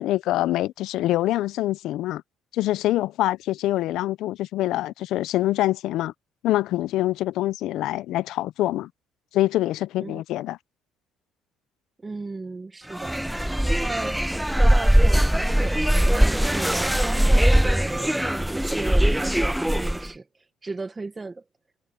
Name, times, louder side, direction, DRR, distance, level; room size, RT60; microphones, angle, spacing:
voice 1, 0.0-2.2 2.5-6.1 6.4-8.9 9.3-10.6, left 15 dB, 70° left, 0.5 m, -25 dB
voice 2, 12.0-13.2 13.6-14.2 14.5-20.2 20.6-21.4, right 3 dB, 20° right, 1.5 m, -35 dB
sound 1, 12.9-20.1, right 1 dB, 5° right, 0.5 m, -21 dB
cardioid pair, 100°, 0 cm